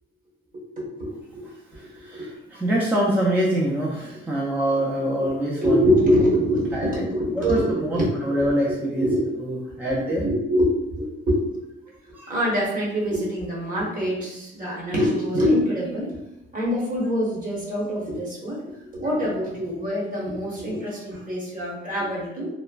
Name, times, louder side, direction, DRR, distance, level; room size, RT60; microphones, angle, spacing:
voice 1, 0.8-1.5 1.8-2.3 5.2-8.1 8.9-9.3 10.1-11.6 12.3-16.2 16.5-22.5, equal, 45° right, -5 dB, 1.3 m, -25 dB
voice 2, 1.7-5.8 6.7-7.0 7.3-9.1 9.4-10.3 12.1-12.3 21.1-21.2, right 1 dB, 10° right, -5 dB, 0.5 m, -25 dB
3.0 x 2.1 x 2.4 m, 0.87 s
cardioid pair, 90°, 20 cm